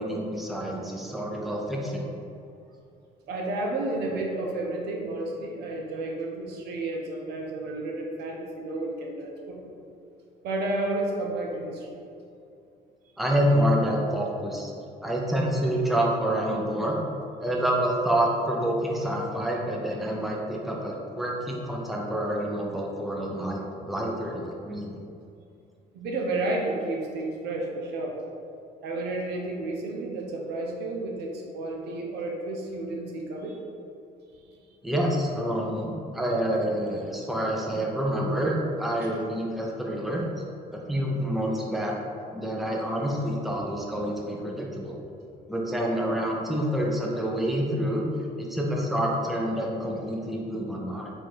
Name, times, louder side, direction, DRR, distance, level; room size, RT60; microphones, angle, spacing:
voice 1, 0.0-2.1 13.2-14.7 15.0-17.0 17.4-23.6 23.9-24.9 34.8-40.2 40.7-41.9 42.3-45.0 45.5-48.0 48.4-51.1, equal, ahead, -2 dB, 0.6 m, -27 dB
voice 2, 3.3-9.7 10.4-11.9 25.9-28.2 28.8-33.6 39.0-39.1 43.6-43.7 44.0-44.1 45.0-45.1, right 2 dB, 75° right, 0 dB, 0.8 m, -31 dB
4.4 x 2.5 x 4.5 m, 2.6 s
cardioid pair, 110°, 17 cm